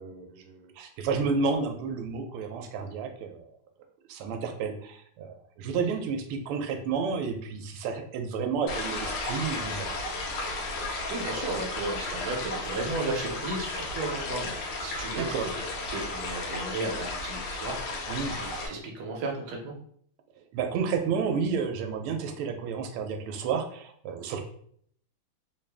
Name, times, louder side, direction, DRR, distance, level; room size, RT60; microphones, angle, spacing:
voice 1, 0.0-3.4 4.1-9.9 15.1-15.5 18.1-18.4 20.5-24.4, right 5 dB, 85° right, 5 dB, 1.5 m, -31 dB
sound 1, 8.7-18.7, left 2 dB, 80° left, 1.6 m, -34 dB
voice 2, 10.8-14.6 14.8-15.4 15.9-18.0 18.3-19.7, right 2 dB, 65° right, 1 dB, 1.1 m, -34 dB
3.8 x 2.4 x 3.3 m, 0.63 s
omnidirectional pair, 2.4 m